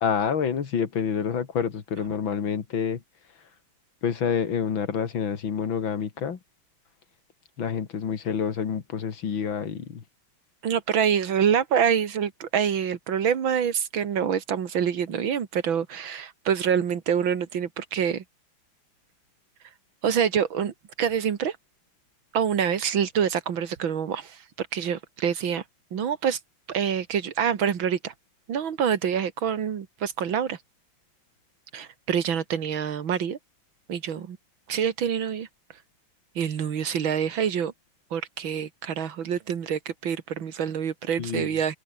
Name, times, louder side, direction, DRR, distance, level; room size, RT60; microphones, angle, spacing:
voice 1, 0.0-3.0 4.0-6.4 7.6-10.0 41.2-41.6, left 7 dB, 80° left, 2.8 m, -28 dB
voice 2, 10.6-18.2 20.0-21.6 22.3-25.6 25.9-26.4 26.7-28.1 28.5-30.6 31.7-33.4 33.9-34.4 34.7-35.5 36.4-37.7 38.1-41.8, right 8 dB, 85° right, 2.5 m, -26 dB
open air
omnidirectional pair, 2.1 m